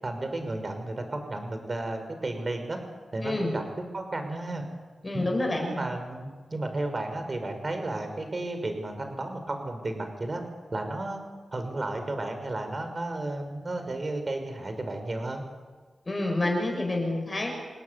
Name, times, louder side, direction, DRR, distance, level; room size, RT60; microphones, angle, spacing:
voice 1, 0.0-2.8 3.1-3.6 3.9-4.6 5.1-5.3 5.6-10.4 10.7-11.2 11.5-15.4, right 2 dB, 35° right, 6 dB, 5.8 m, -33 dB
voice 2, 3.2-3.5 5.0-5.7 16.1-17.5, left 2 dB, 30° left, 1 dB, 6.8 m, -28 dB
29.0 x 19.5 x 9.7 m, 1.4 s
wide cardioid pair, 95°, 0 cm